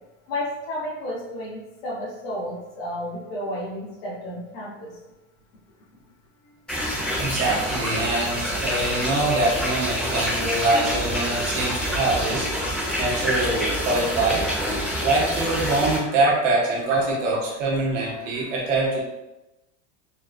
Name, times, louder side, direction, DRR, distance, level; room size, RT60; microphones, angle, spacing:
voice 1, 0.3-4.9, left 1 dB, 55° left, -6 dB, 1.2 m, -32 dB
sound 1, 6.7-16.0, equal, 5° left, 1.1 m, -27 dB
voice 2, 7.2-12.5 13.0-14.4 15.0-19.0, right 2 dB, 90° right, -4 dB, 1.3 m, -24 dB
3.7 x 2.2 x 2.6 m, 1.0 s
supercardioid pair, 175°, 36 cm